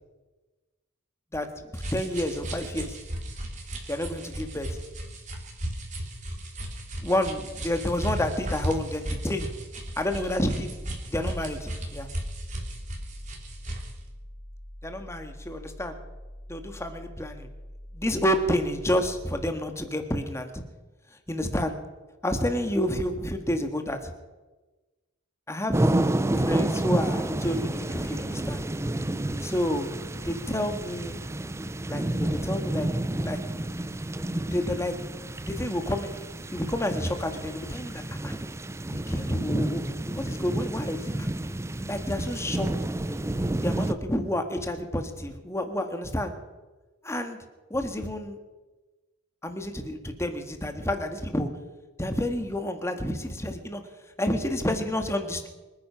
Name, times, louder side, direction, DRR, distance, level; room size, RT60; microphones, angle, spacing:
voice 1, 1.7-3.0 3.9-4.8 7.0-9.5 10.0-10.8 11.1-12.1 14.8-16.0 16.5-17.5 17.9-20.6 21.3-21.8 22.2-24.1 25.5-26.0 26.3-28.6 29.4-30.0 30.2-31.2 31.9-32.9 33.2-33.4 34.5-34.9 35.4-38.3 38.9-39.8 40.1-41.3 41.9-42.9 43.6-46.3 47.0-47.4 47.7-48.4 49.4-51.5 52.0-53.8 54.2-55.5, left 1 dB, 15° left, 6 dB, 1.6 m, -29 dB
sound 1, 1.7-14.0, right 1 dB, 35° right, 3.4 m, -36 dB
sound 2, 9.7-19.5, equal, 50° left, 3.2 m, -44 dB
sound 3, 25.7-43.9, right 1 dB, 15° right, 0.5 m, -30 dB
25.5 x 9.7 x 5.8 m, 1.2 s
head